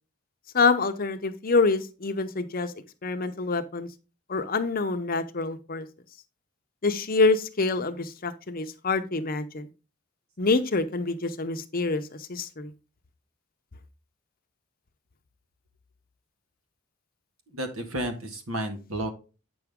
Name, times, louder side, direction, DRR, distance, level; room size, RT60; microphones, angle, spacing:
voice 1, 0.5-2.7 3.0-3.9 4.3-5.9 6.8-9.7 10.4-12.7, left 3 dB, 40° left, 9 dB, 0.8 m, -26 dB
voice 2, 17.5-19.1, right 1 dB, 75° right, 6 dB, 1.8 m, -32 dB
8.6 x 5.9 x 3.6 m, 0.31 s
head